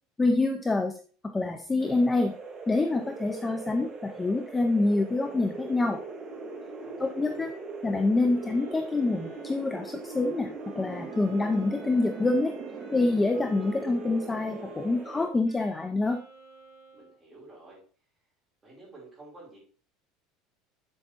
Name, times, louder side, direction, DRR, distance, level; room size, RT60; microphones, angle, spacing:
voice 1, 0.2-0.9 1.3-2.3 2.7-6.0 7.0-7.5 7.8-12.5 12.9-16.2, left 2 dB, 10° left, 5 dB, 0.4 m, -26 dB
sound 1, 1.8-15.3, right 3 dB, 30° right, 1.6 m, -40 dB
voice 2, 6.8-7.5 16.9-17.8 18.6-19.6, right 2 dB, 10° right, -4 dB, 3.4 m, -51 dB
Wind instrument woodwind instrument, 8.3-17.2, right 3 dB, 50° right, 4.1 m, -51 dB
7.8 x 7.2 x 2.9 m, 0.42 s
cardioid pair, 180°, 0 cm